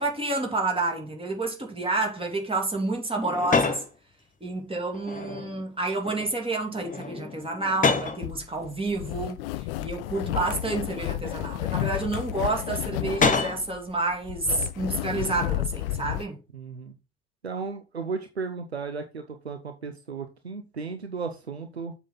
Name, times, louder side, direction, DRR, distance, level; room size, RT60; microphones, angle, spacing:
voice 1, 0.0-3.8 4.4-16.4, right 2 dB, 15° right, 2.6 m, -29 dB
sound 1, 3.2-3.9 4.9-5.7 6.0-6.3 6.7-8.2 9.1-9.2 10.3-11.2 12.9-13.7, left 4 dB, 25° left, 1.6 m, -28 dB
sound 2, 8.2-16.2, left 15 dB, 65° left, 0.5 m, -32 dB
voice 2, 16.5-17.0 17.4-21.9, right 5 dB, 90° right, 0.6 m, -35 dB
7.3 x 5.8 x 3.9 m
figure-of-eight pair, 55°, 31 cm